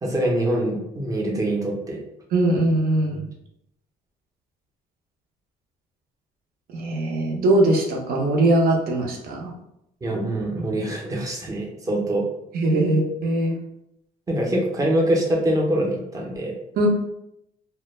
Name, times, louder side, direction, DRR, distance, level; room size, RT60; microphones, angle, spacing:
voice 1, 0.0-2.0 10.0-12.3 14.3-16.5, right 1 dB, 20° right, -1 dB, 0.7 m, -24 dB
voice 2, 2.3-3.2 6.7-9.5 12.5-13.6 16.8-16.9, right 1 dB, 60° right, 0 dB, 0.7 m, -21 dB
2.1 x 2.1 x 3.1 m, 0.81 s
cardioid pair, 110°, 17 cm